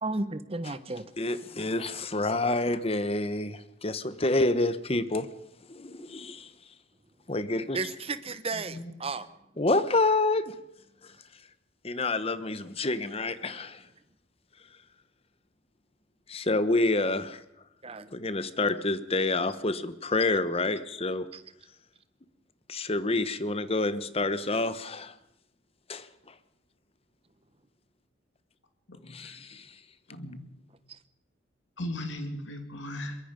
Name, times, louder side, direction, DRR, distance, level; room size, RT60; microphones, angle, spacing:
voice 1, 0.0-1.1 7.7-9.3 17.8-18.1 21.3-21.4, right 3 dB, 30° right, 1.0 m, -33 dB
voice 2, 1.2-5.3 5.7-6.7 7.3-7.8 9.6-10.6 11.0-11.4 11.8-13.9 14.7-14.8 16.3-17.4 18.1-21.3 22.7-25.2 25.9-26.4 29.1-29.8, left 2 dB, 30° left, 1.0 m, -28 dB
voice 3, 8.5-8.9 28.9-29.4 30.1-30.4 31.8-33.2, left 1 dB, 70° left, 2.6 m, -38 dB
22.5 x 22.5 x 5.3 m
head